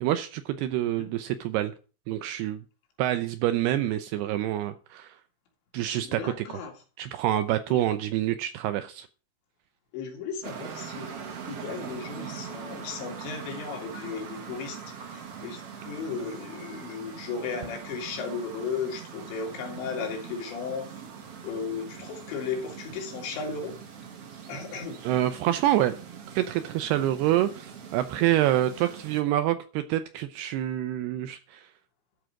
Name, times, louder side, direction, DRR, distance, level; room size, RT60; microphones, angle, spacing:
voice 1, 0.0-1.7 2.1-2.6 3.0-5.1 5.7-6.6 7.0-9.1 25.0-26.0 26.4-31.7, right 13 dB, 80° right, 2.4 m, -27 dB
voice 2, 6.0-6.7 7.7-8.0 9.9-20.9 21.4-23.8 24.5-25.0, left 5 dB, 75° left, 4.4 m, -35 dB
sound 1, 10.4-29.2, right 7 dB, 60° right, 1.6 m, -42 dB
13.0 x 4.8 x 7.6 m
omnidirectional pair, 5.2 m